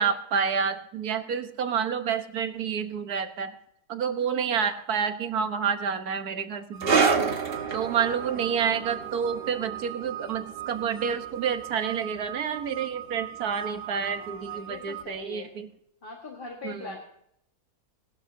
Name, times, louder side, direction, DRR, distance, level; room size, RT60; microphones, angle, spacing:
voice 1, 0.0-3.5 3.9-7.2 7.7-15.7 16.6-17.0, right 7 dB, 85° right, 8 dB, 1.6 m, -29 dB
sound 1, 6.7-15.0, right 11 dB, 70° right, 0.5 m, -40 dB
sound 2, 6.8-13.8 14.1-14.3 15.0-15.1, right 5 dB, 45° right, 1.1 m, -30 dB
voice 2, 13.6-15.5 16.0-17.0, left 3 dB, 35° left, 1 dB, 1.7 m, -42 dB
19.5 x 12.0 x 2.7 m, 0.74 s
omnidirectional pair, 1.6 m